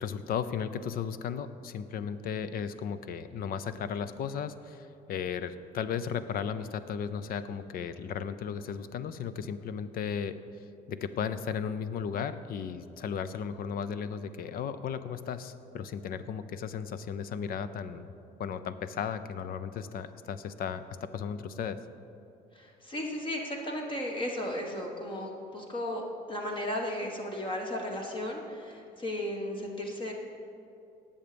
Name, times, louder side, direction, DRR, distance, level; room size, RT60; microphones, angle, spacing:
voice 1, 0.0-10.4 10.9-18.1 18.4-21.8, left 7 dB, 60° left, 13 dB, 0.7 m, -35 dB
voice 2, 22.5-30.1, left 1 dB, 30° left, 0 dB, 1.6 m, -35 dB
18.0 x 7.2 x 5.2 m, 2.7 s
cardioid pair, 110°, 17 cm